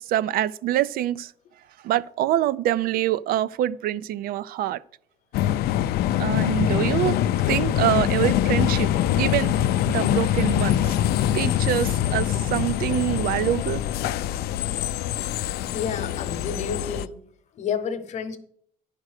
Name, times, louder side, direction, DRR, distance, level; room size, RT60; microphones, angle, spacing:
voice 1, 0.0-1.3 1.8-4.8 6.2-7.2 7.5-9.5 9.9-11.0 11.3-13.8, right 12 dB, 70° right, 0.4 m, -25 dB
sound 1, 5.3-17.1, left 12 dB, 80° left, 0.4 m, -24 dB
voice 2, 15.7-17.2 17.5-18.4, left 6 dB, 50° left, 0.9 m, -30 dB
10.0 x 5.1 x 6.5 m
cardioid pair, 160°, 16 cm